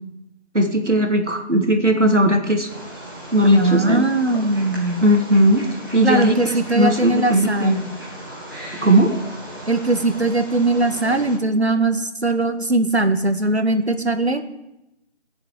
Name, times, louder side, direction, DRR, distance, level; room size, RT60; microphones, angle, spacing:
voice 1, 0.5-2.7 3.3-4.1 5.0-5.7 5.9-7.8 8.8-9.1, right 1 dB, 85° right, 3 dB, 2.7 m, -18 dB
Wild animals, 2.7-11.4, right 1 dB, 20° right, 2.0 m, -36 dB
voice 2, 3.4-5.0 6.0-7.8 9.7-14.5, right 2 dB, 65° right, 8 dB, 1.6 m, -20 dB
15.5 x 7.6 x 7.5 m, 0.90 s
figure-of-eight pair, 170°, 35 cm